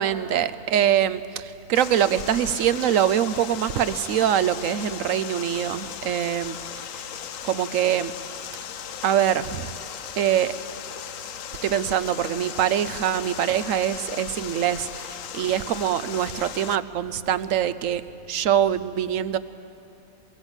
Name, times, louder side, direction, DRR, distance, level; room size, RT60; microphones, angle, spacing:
voice 1, 0.0-6.6 7.4-8.1 9.0-9.7 10.2-10.5 11.6-18.0 18.3-19.4, right 10 dB, 75° right, 14 dB, 1.1 m, -24 dB
Water, 1.7-16.8, left 9 dB, 80° left, 1.1 m, -37 dB
23.0 x 22.5 x 8.1 m, 2.7 s
omnidirectional pair, 1.4 m